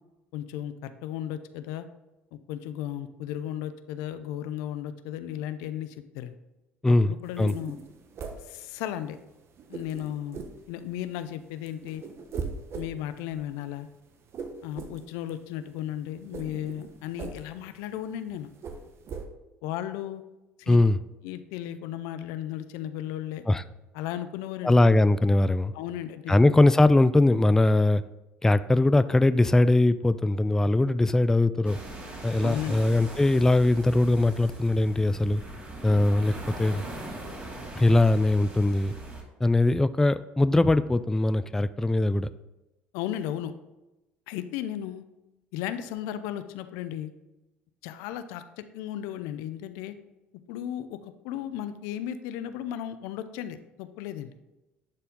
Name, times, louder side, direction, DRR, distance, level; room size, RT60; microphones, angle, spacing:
voice 1, 0.3-1.9 2.3-6.3 6.9-7.8 8.4-9.2 9.7-10.4 10.7-12.0 12.7-13.9 14.6-18.5 19.6-20.2 20.6-20.8 21.2-23.5 23.9-24.8 25.7-26.3 32.4-32.7 42.9-43.5 44.3-45.0 45.5-47.1 47.8-49.9 50.5-54.3, left 11 dB, 70° left, 11 dB, 0.5 m, -35 dB
voice 2, 6.8-7.5 20.7-21.0 23.5-23.6 24.6-25.7 26.3-28.0 28.4-31.8 32.2-35.4 35.8-36.8 37.8-38.9 39.4-42.3, left 2 dB, 10° left, 14 dB, 0.3 m, -21 dB
sound 1, 7.3-9.2 9.5-11.3 11.5-19.2, right 5 dB, 50° right, 1.1 m, -40 dB
sound 2, 31.6-39.2, right 2 dB, 25° right, 2.6 m, -40 dB
10.5 x 4.5 x 3.7 m, 1.0 s
hypercardioid pair, 70°, 6 cm